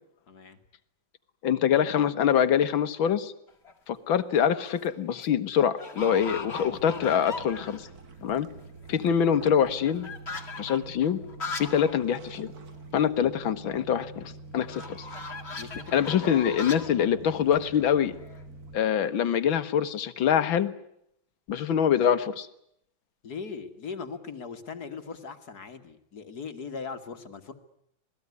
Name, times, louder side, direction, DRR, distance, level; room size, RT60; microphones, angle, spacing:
voice 1, 0.3-0.6 9.0-9.2 13.2-13.4 15.6-16.4 23.2-27.5, left 5 dB, 55° left, 9 dB, 2.2 m, -39 dB
voice 2, 1.4-3.3 3.9-7.9 8.2-8.5 8.9-10.1 10.6-11.2 11.6-12.5 12.9-15.1 15.9-18.2 18.7-20.7 21.5-22.5, left 8 dB, 85° left, 12 dB, 2.0 m, -24 dB
sound 1, 3.5-3.9 4.5-4.9 5.2-5.3 5.8-8.0 8.3-8.4 8.6-12.0 12.3-12.4 12.7-12.8 14.7-18.4, left 4 dB, 35° left, 2.1 m, -40 dB
sound 2, 6.0-18.8, right 3 dB, 50° right, 1.9 m, -46 dB
26.5 x 19.0 x 9.6 m, 0.76 s
omnidirectional pair, 2.1 m